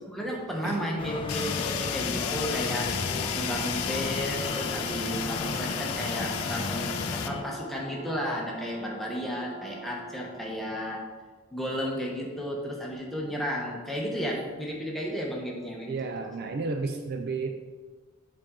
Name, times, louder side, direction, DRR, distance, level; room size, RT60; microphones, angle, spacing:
voice 1, 0.1-3.1 3.3-11.0 11.5-15.9, equal, ahead, -3 dB, 0.9 m, -33 dB
sound 1, 1.0-7.4, left 3 dB, 25° left, 0.3 m, -34 dB
Fire, 1.3-7.3, left 9 dB, 85° left, 0.4 m, -33 dB
Brass instrument, 1.8-10.5, right 2 dB, 80° right, 1.0 m, -43 dB
voice 2, 15.9-17.5, right 3 dB, 45° right, 5 dB, 0.4 m, -32 dB
7.3 x 4.3 x 3.8 m, 1.4 s
head